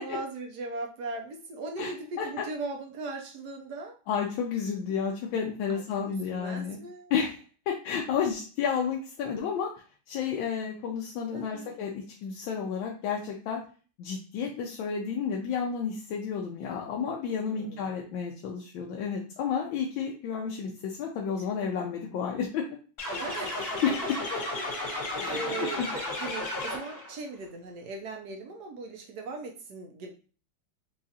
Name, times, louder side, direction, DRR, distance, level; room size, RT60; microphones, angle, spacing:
voice 1, 0.0-4.0 5.7-7.1 11.3-11.7 17.5-18.0 23.2-23.8 24.5-24.7 25.1-30.1, right 3 dB, 70° right, 2 dB, 1.0 m, -39 dB
voice 2, 4.1-6.8 7.1-9.7 10.1-13.6 14.0-22.7 23.8-24.4 25.2-25.9, left 6 dB, 80° left, 0 dB, 1.3 m, -31 dB
sound 1, 23.0-27.1, left 2 dB, 50° left, 2.1 m, -33 dB
4.8 x 2.4 x 2.7 m, 0.38 s
omnidirectional pair, 2.1 m